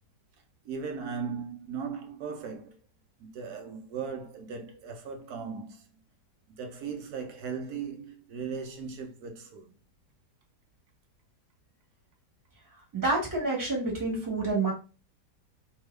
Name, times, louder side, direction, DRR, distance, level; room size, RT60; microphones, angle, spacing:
voice 1, 0.6-2.8 3.2-6.0 6.5-9.8, right 6 dB, 70° right, 1.1 m, -38 dB
voice 2, 12.9-14.7, right 3 dB, 15° right, 1.1 m, -28 dB
2.8 x 2.7 x 3.1 m
omnidirectional pair, 1.8 m